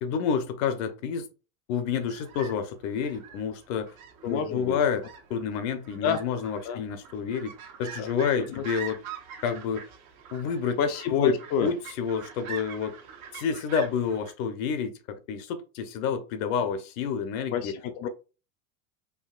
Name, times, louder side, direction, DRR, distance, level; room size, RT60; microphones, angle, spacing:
voice 1, 0.0-1.3 1.7-3.9 4.2-5.0 5.3-9.0 9.4-9.9 10.3-10.8 11.1-13.0 13.3-15.0 15.3-17.8 18.0-18.1, left 7 dB, 65° left, 0.8 m, -29 dB
sound 1, 1.9-14.3, right 7 dB, 85° right, 1.3 m, -44 dB
voice 2, 4.3-4.8 6.0-6.2 6.6-6.8 8.0-8.1 8.4-8.6 10.8-11.7 17.5-18.1, left 7 dB, 40° left, 0.5 m, -29 dB
4.6 x 2.7 x 2.4 m
supercardioid pair, 115°, 42 cm